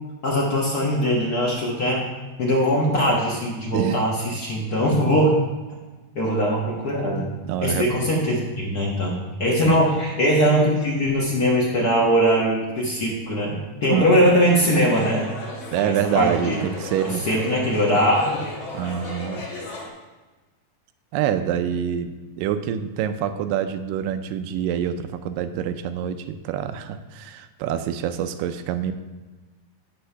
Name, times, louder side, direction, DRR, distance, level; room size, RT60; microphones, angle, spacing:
voice 1, 0.2-2.0 2.4-5.3 6.1-7.3 7.6-15.2 15.8-16.6 17.3-18.4, equal, 70° left, -4 dB, 0.9 m, -21 dB
voice 2, 7.4-8.1 9.6-9.8 13.9-14.3 15.7-17.3 18.7-19.5 21.1-28.9, right 9 dB, 90° right, 9 dB, 2.3 m, -26 dB
sound 1, 14.7-19.9, left 3 dB, 35° left, 2.5 m, -35 dB
11.5 x 4.3 x 5.5 m, 1.2 s
omnidirectional pair, 3.8 m